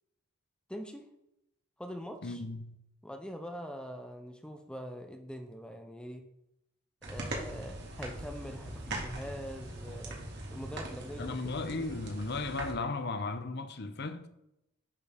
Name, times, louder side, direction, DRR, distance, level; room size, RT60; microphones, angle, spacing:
voice 1, 0.7-1.1 1.8-2.4 3.0-6.2 7.1-10.2 10.5-11.9, equal, 5° left, 0.6 m, -43 dB
voice 2, 2.2-2.8 11.2-14.3, left 3 dB, 50° left, 0.7 m, -36 dB
sound 1, 7.0-12.7, right 1 dB, 55° right, 2.0 m, -41 dB
10.0 x 6.8 x 3.5 m
head